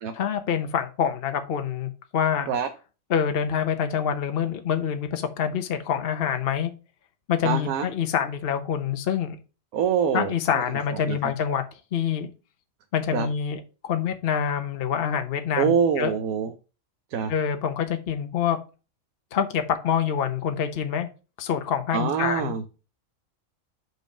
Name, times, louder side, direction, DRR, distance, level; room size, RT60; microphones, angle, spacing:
voice 1, 0.1-2.5 3.1-6.7 7.3-9.4 10.1-11.6 11.9-12.3 12.9-16.1 17.3-18.6 19.3-21.1 21.4-22.5, left 8 dB, 50° left, 0.9 m, -26 dB
voice 2, 7.4-7.9 9.7-10.6 11.0-11.2 13.1-13.3 15.6-16.5 17.1-17.3 21.9-22.6, right 7 dB, 90° right, 1.2 m, -25 dB
5.4 x 4.5 x 5.9 m
omnidirectional pair, 1.4 m